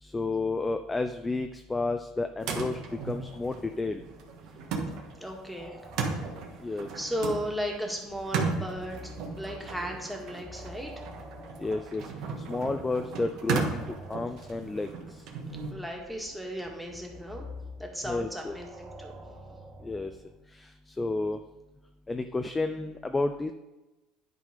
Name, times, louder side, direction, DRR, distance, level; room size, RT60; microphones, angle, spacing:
voice 1, 0.0-2.8 3.0-4.0 6.6-6.9 11.6-12.0 12.5-13.8 14.1-14.9 18.0-18.6 19.8-20.1 20.5-21.4 22.1-23.5, left 3 dB, 15° left, 7 dB, 0.4 m, -31 dB
sound 1, 2.4-15.7, right 4 dB, 60° right, 1.4 m, -35 dB
sound 2, 2.9-4.7 5.0-12.9 13.5-20.4, left 1 dB, 25° right, 2.5 m, -49 dB
voice 2, 5.2-5.8 6.9-9.1 9.4-11.0 15.7-17.5 17.8-19.2, equal, ahead, 0 dB, 1.7 m, -35 dB
10.0 x 3.8 x 5.0 m, 1.1 s
supercardioid pair, 105°, 0 cm